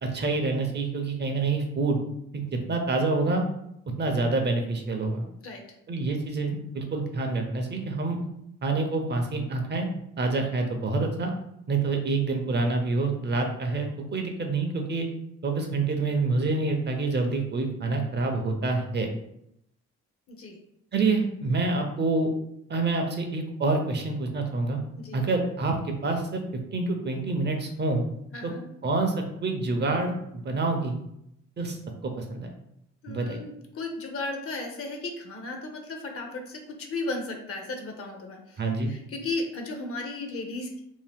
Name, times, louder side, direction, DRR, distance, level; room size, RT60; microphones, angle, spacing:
voice 1, 0.0-2.0 2.3-3.4 3.9-5.3 5.9-8.2 8.6-9.9 10.2-11.3 11.7-15.1 15.4-19.1 20.9-22.3 22.7-24.8 25.1-26.4 26.7-28.1 28.4-28.5 28.8-29.1 29.4-31.0 31.6-32.5 33.1-33.4 38.6-38.9, right 3 dB, 35° right, 4 dB, 0.5 m, -27 dB
voice 2, 25.0-25.3 28.3-28.6 33.0-38.6 38.9-40.8, left 2 dB, 50° left, 3 dB, 0.7 m, -35 dB
2.7 x 2.1 x 3.4 m, 0.78 s
cardioid pair, 90°, 30 cm